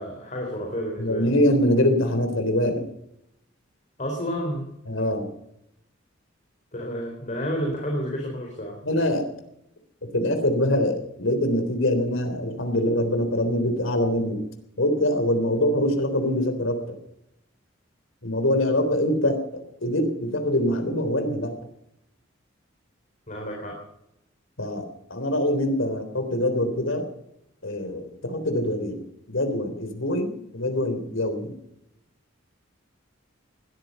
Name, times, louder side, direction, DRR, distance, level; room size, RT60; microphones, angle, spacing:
voice 1, 0.0-1.2 4.0-4.7 6.7-8.8 23.3-23.8, equal, 40° left, 0 dB, 4.1 m, -30 dB
voice 2, 1.0-2.8 4.9-5.3 8.8-9.3 10.1-14.4 14.8-17.0 18.2-21.5 24.6-27.0 27.6-31.5, left 1 dB, 75° left, 7 dB, 3.5 m, -24 dB
20.0 x 13.5 x 5.4 m, 0.80 s
head